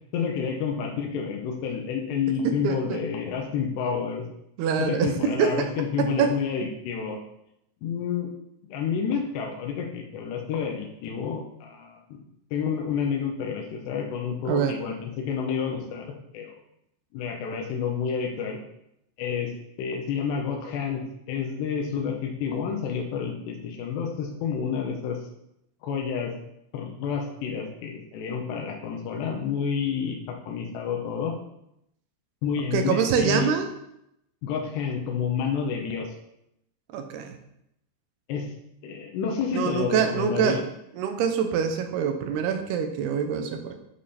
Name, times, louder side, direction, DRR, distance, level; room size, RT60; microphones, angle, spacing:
voice 1, 0.1-4.2 4.8-7.2 7.8-8.3 8.7-12.2 12.5-16.1 16.3-16.6 17.1-18.6 19.2-19.5 19.8-21.0 21.3-25.2 25.8-26.3 26.7-31.4 32.4-33.5 34.4-36.1 38.3-38.5 38.8-40.6, left 6 dB, 90° left, 1 dB, 3.2 m, -29 dB
voice 2, 2.6-3.0 4.6-5.5 6.2-6.3 14.5-14.7 32.7-33.7 36.9-37.4 39.5-40.6 41.0-43.8, right 7 dB, 75° right, 6 dB, 2.8 m, -25 dB
11.5 x 5.3 x 4.3 m, 0.80 s
omnidirectional pair, 4.7 m